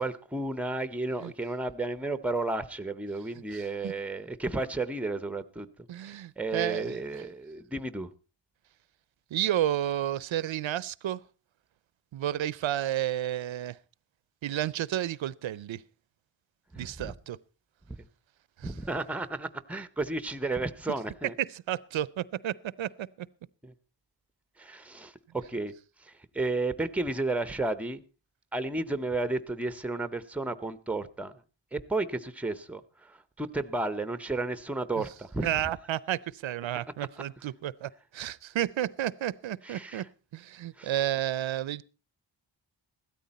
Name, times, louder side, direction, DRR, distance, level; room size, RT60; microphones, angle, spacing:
voice 1, 0.0-5.7 6.4-8.1 16.7-17.1 17.9-18.0 18.6-21.3 23.6-23.7 24.6-25.7 26.0-28.0 28.5-31.3 31.7-32.8 33.1-35.5 39.6-40.1 40.8-40.9, right 2 dB, 5° right, 0.7 m, -32 dB
voice 2, 3.5-3.9 5.9-7.2 9.3-11.2 12.1-13.8 14.4-15.8 16.8-17.4 18.6-18.7 21.4-23.3 35.0-35.1 35.4-40.1 40.3-41.8, right 12 dB, 85° right, 0.6 m, -31 dB
15.5 x 13.0 x 4.1 m
wide cardioid pair, 140°, 45 cm